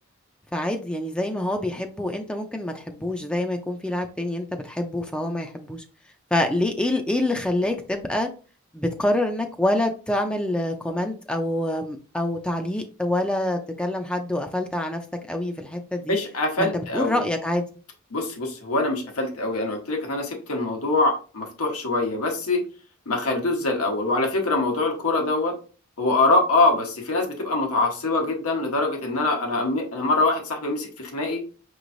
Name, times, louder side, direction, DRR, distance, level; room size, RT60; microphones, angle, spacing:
voice 1, 0.5-5.8 6.3-8.3 8.7-15.0 15.3-16.1 16.6-17.7, left 1 dB, 5° left, 5 dB, 0.3 m, -26 dB
voice 2, 16.1-17.2 18.1-22.6 23.1-25.6 26.0-31.4, left 2 dB, 90° left, 2 dB, 1.1 m, -24 dB
5.7 x 3.0 x 2.6 m, 0.38 s
head